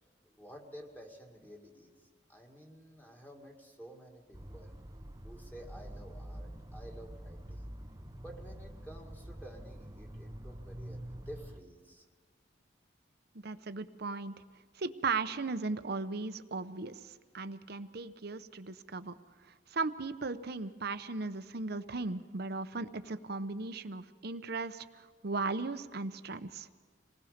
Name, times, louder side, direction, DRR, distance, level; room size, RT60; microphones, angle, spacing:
voice 1, 0.2-2.0 2.3-4.8 5.2-7.7 8.0-12.1, equal, 10° left, 0 dB, 2.3 m, -51 dB
sound 1, 4.3-11.6, right 1 dB, 20° right, 0.9 m, -46 dB
voice 2, 13.4-14.3 14.8-19.1 19.5-26.7, right 3 dB, 60° right, 11 dB, 0.9 m, -37 dB
27.0 x 19.5 x 5.2 m, 1.5 s
head